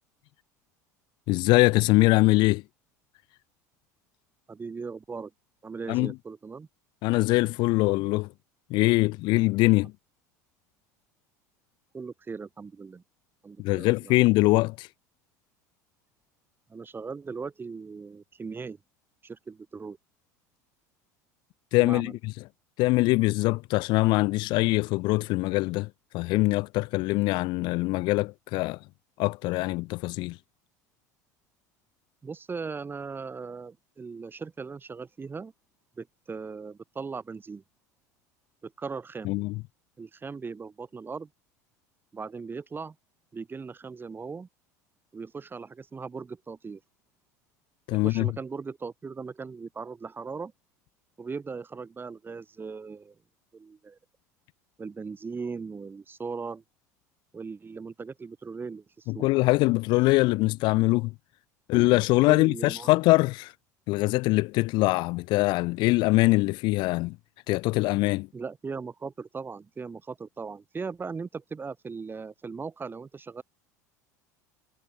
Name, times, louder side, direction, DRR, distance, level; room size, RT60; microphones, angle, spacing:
voice 1, 1.3-2.6 5.9-6.1 7.0-8.3 8.7-9.9 13.6-14.9 21.7-22.1 22.8-25.9 26.1-28.8 29.2-30.4 39.2-39.5 47.9-48.3 59.1-61.1 61.7-63.5 63.9-67.2 67.5-68.3, left 22 dB, 55° left, 0.6 m, -23 dB
voice 2, 4.5-5.3 5.6-6.7 11.9-13.0 13.4-14.3 16.7-18.8 19.2-20.0 21.8-22.2 32.2-35.5 36.0-37.6 38.6-39.3 40.0-41.3 42.1-43.0 43.3-44.5 45.1-46.8 47.9-50.5 51.2-53.2 53.5-54.0 54.8-56.6 57.3-59.3 62.3-62.9 68.3-73.4, right 5 dB, 25° right, 5.6 m, -38 dB
hypercardioid pair, 75°, 9 cm